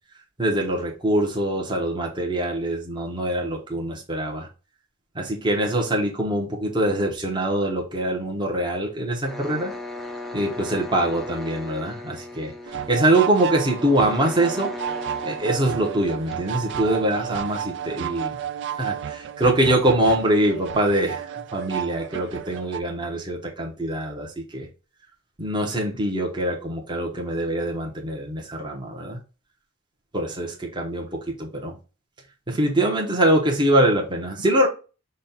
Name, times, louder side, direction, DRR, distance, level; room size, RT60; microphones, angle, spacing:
voice 1, 0.4-4.5 5.1-9.7 10.3-14.7 15.2-18.4 18.8-24.7 25.4-29.2 30.1-31.8 32.5-34.7, right 1 dB, 20° right, 0.9 m, -24 dB
sound 1, 9.2-17.0, left 2 dB, ahead, 0.5 m, -37 dB
sound 2, 12.7-22.8, right 9 dB, 55° right, 0.3 m, -32 dB
5.2 x 2.3 x 4.1 m
head